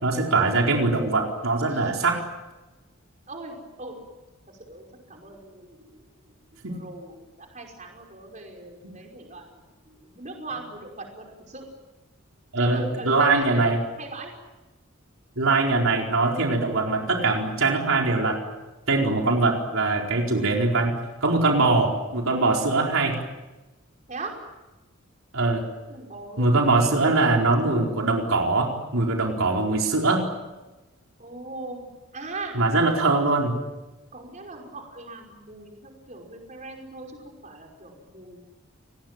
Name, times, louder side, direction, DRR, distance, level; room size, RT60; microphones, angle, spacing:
voice 1, 0.0-2.2 6.6-6.7 8.8-8.9 12.5-13.8 15.4-18.4 18.9-20.9 21.2-23.1 25.3-25.6 26.4-30.2 32.5-33.5, right 3 dB, 75° right, 0 dB, 4.6 m, -22 dB
voice 2, 3.3-4.0 4.6-9.6 9.9-11.7 12.6-14.3 22.3-22.5 24.1-24.3 25.9-26.5 31.2-31.9 32.1-32.6 34.1-38.4, right 3 dB, 35° right, 1 dB, 5.4 m, -40 dB
28.5 x 20.0 x 9.1 m, 1.1 s
head